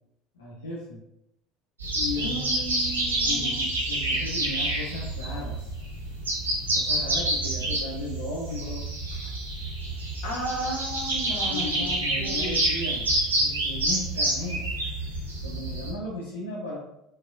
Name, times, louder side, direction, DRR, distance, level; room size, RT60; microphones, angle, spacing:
voice 1, 0.3-1.0 1.9-2.7 3.2-5.7 6.7-8.9 11.4-13.1 13.3-14.7 15.4-16.8, left 2 dB, 75° left, -8 dB, 1.1 m, -36 dB
sound 1, 1.8-15.9, right 1 dB, 80° right, 1.0 m, -28 dB
voice 2, 2.2-3.7 10.2-12.6, right 1 dB, 60° left, -3 dB, 1.6 m, -34 dB
4.7 x 4.2 x 2.6 m, 0.83 s
figure-of-eight pair, 65°, 0 cm